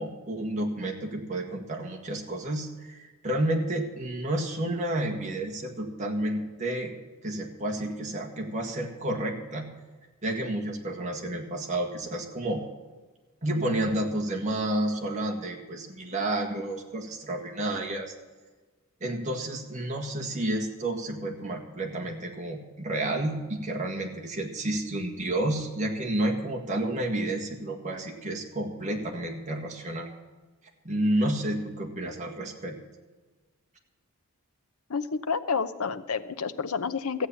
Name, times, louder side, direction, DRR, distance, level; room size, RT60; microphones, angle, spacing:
voice 1, 0.0-6.9 7.2-9.7 10.2-12.6 13.4-18.1 19.0-30.1 30.8-32.8, right 1 dB, 35° right, 1 dB, 1.7 m, -30 dB
voice 2, 34.9-37.3, left 5 dB, 80° left, 12 dB, 0.7 m, -29 dB
14.5 x 8.5 x 7.1 m, 1.3 s
head